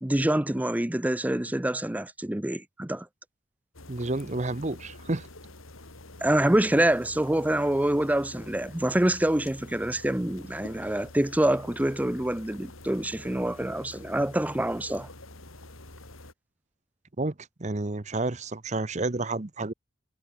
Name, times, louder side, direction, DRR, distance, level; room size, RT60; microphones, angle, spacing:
voice 1, 0.0-3.1 6.2-15.1, right 1 dB, 10° right, 0.5 m, -26 dB
sound 1, 3.7-16.3, left 2 dB, 90° left, 5.3 m, -47 dB
voice 2, 3.9-5.3 17.2-17.3 17.6-19.7, right 2 dB, 35° right, 0.9 m, -30 dB
head